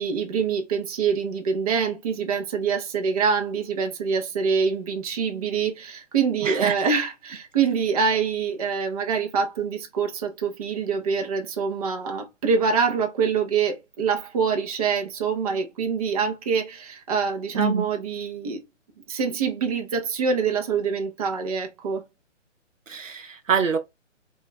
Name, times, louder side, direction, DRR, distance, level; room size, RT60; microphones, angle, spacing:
voice 1, 0.0-18.6 19.1-22.0, right 6 dB, 30° right, 0.5 m, -25 dB
voice 2, 6.4-6.9 17.5-17.9 22.9-23.8, right 5 dB, 85° right, 0.7 m, -25 dB
2.2 x 2.2 x 3.9 m
figure-of-eight pair, 135°, 37 cm